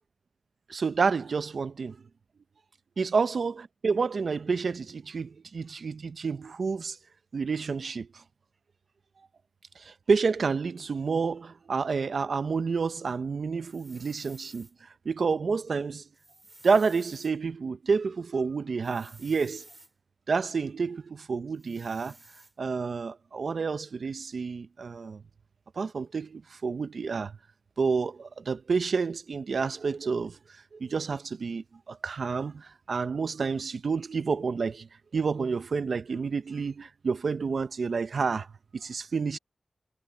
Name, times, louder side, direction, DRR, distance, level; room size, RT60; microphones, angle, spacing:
voice 1, 0.7-2.0 3.0-7.0 7.3-8.1 9.8-14.7 15.0-16.0 16.6-19.7 20.3-22.1 22.6-25.2 25.8-27.3 27.8-30.4 30.7-34.9 35.1-38.5 38.7-39.4, right 5 dB, 70° right, 0.6 m, -29 dB
sound 1, 13.7-14.7 16.1-17.3 18.8-19.9 21.6-22.5, right 2 dB, 20° right, 5.2 m, -53 dB
wide cardioid pair, 110°, 0 cm